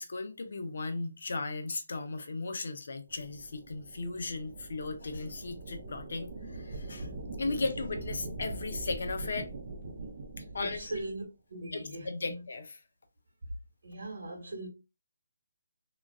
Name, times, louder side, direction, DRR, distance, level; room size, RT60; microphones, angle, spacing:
voice 1, 0.0-7.1 7.4-9.5 10.5-10.9 11.7-12.8, left 3 dB, 60° left, 0.6 m, -36 dB
sound 1, 3.1-11.2, right 2 dB, 40° right, 0.5 m, -42 dB
voice 2, 10.6-11.2 11.5-12.4 13.8-14.7, right 2 dB, 65° right, 1.4 m, -40 dB
3.0 x 2.3 x 2.3 m
hypercardioid pair, 170°, 0 cm